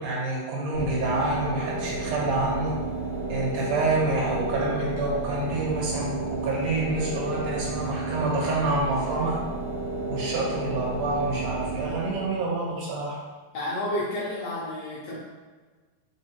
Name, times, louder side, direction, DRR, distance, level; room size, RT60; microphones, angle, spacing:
voice 1, 0.0-2.8 3.3-9.4 10.0-13.2, right 2 dB, 70° right, -4 dB, 2.4 m, -27 dB
sound 1, 0.7-12.4, right 3 dB, 45° right, 1.3 m, -32 dB
voice 2, 13.5-15.2, left 1 dB, 80° left, -6 dB, 1.4 m, -30 dB
4.4 x 4.2 x 2.8 m, 1.3 s
omnidirectional pair, 3.9 m